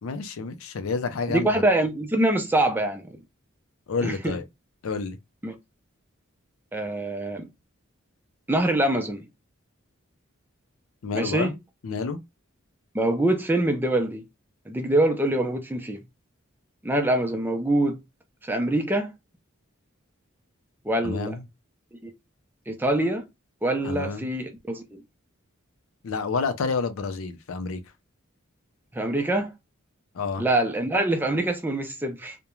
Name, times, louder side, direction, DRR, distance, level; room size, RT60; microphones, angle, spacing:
voice 1, 0.0-1.6 3.9-4.4 4.8-5.2 11.0-11.5 11.8-12.2 21.0-21.4 23.8-24.3 26.0-27.8 30.1-30.4, left 4 dB, 75° left, 0.4 m, -29 dB
voice 2, 1.3-3.2 4.0-4.4 5.4-5.5 6.7-7.5 8.5-9.2 11.1-11.5 12.9-14.2 14.7-16.0 16.8-18.0 18.5-19.1 20.9-21.4 22.0-22.1 22.7-23.2 23.6-25.0 28.9-29.5 30.4-32.4, right 1 dB, 10° right, 0.4 m, -24 dB
2.3 x 2.1 x 3.0 m
head